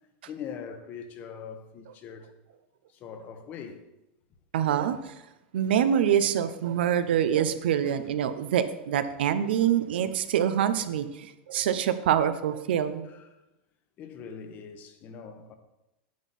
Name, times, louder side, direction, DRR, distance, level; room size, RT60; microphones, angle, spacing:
voice 1, 0.3-2.3 2.9-3.8 7.9-8.0 13.0-13.4 14.0-15.6, left 7 dB, 35° left, 1.0 m, -42 dB
voice 2, 4.5-5.1 5.5-13.1, right 9 dB, 85° right, 0.8 m, -25 dB
9.5 x 8.3 x 4.2 m
supercardioid pair, 150°, 5 cm